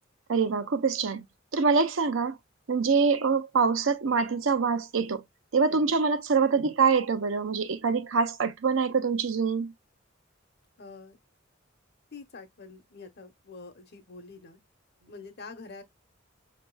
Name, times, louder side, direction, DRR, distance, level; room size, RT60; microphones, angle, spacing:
voice 1, 0.3-1.2 1.5-2.4 2.7-5.2 5.5-9.7, right 5 dB, 80° right, 0.7 m, -25 dB
voice 2, 10.8-11.2 12.1-14.6 15.1-15.8, left 4 dB, 55° left, 0.9 m, -46 dB
5.4 x 2.9 x 2.2 m
head